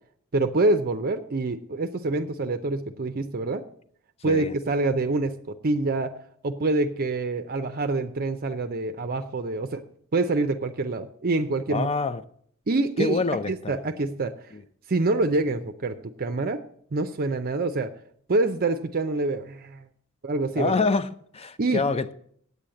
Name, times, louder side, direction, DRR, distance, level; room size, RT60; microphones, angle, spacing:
voice 1, 0.3-3.6 4.2-6.1 6.4-9.8 10.1-11.9 12.7-14.3 14.9-16.6 16.9-17.9 18.3-19.8 20.2-20.8 21.6-21.8, right 2 dB, 40° right, 0.6 m, -26 dB
voice 2, 11.7-12.2 13.0-13.8 14.5-14.6 20.6-22.1, left 3 dB, 25° left, 0.5 m, -26 dB
8.6 x 8.3 x 7.6 m
head